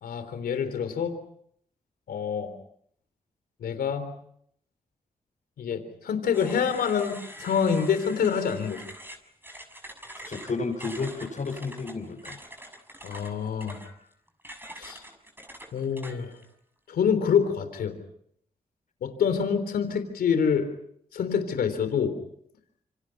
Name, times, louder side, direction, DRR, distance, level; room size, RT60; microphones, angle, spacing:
voice 1, 0.0-1.1 2.1-2.5 3.6-4.1 5.6-8.8 13.0-13.8 14.8-15.0 15.7-16.4 16.9-18.0 19.0-20.7 21.1-22.1, left 7 dB, 85° left, 8 dB, 3.5 m, -26 dB
sound 1, 6.3-16.4, equal, 15° right, 7.0 m, -45 dB
voice 2, 10.2-12.4, left 4 dB, 60° left, -2 dB, 5.9 m, -32 dB
27.5 x 25.5 x 5.9 m, 0.70 s
supercardioid pair, 50°, 15 cm